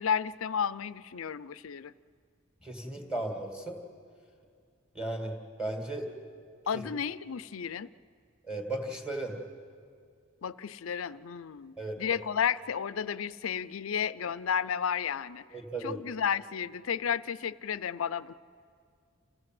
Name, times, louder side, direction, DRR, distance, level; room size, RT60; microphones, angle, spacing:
voice 1, 0.0-1.9 6.7-7.9 10.4-15.4 15.8-18.3, left 7 dB, 80° left, 17 dB, 0.5 m, -32 dB
voice 2, 2.6-3.8 4.9-6.1 6.7-6.8 8.4-9.4 11.8-12.0 15.5-16.0, right 2 dB, 5° right, 2 dB, 2.4 m, -35 dB
28.0 x 16.0 x 7.7 m, 2.2 s
head